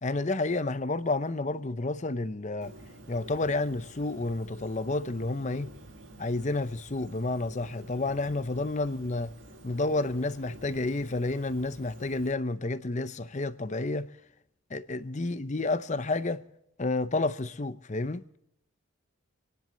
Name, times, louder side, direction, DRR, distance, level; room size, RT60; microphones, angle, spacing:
voice 1, 0.0-2.7 3.1-5.7 6.2-9.3 9.6-14.1 14.7-16.5 16.8-18.2, left 2 dB, 35° left, 0.7 m, -30 dB
Bird, 2.6-12.3, right 1 dB, 60° right, 2.2 m, -50 dB
28.0 x 10.5 x 4.0 m
head